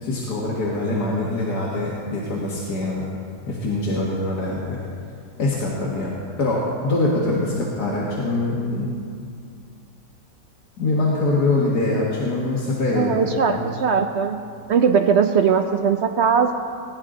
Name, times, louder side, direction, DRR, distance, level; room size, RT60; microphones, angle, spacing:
voice 1, 0.0-3.1 3.5-4.8 5.4-6.1 6.4-8.9 10.8-13.7, left 2 dB, 80° left, -5 dB, 2.1 m, -23 dB
voice 2, 12.9-14.4 14.7-16.5, right 6 dB, 70° right, 7 dB, 0.6 m, -19 dB
20.0 x 11.0 x 3.8 m, 2.3 s
omnidirectional pair, 1.7 m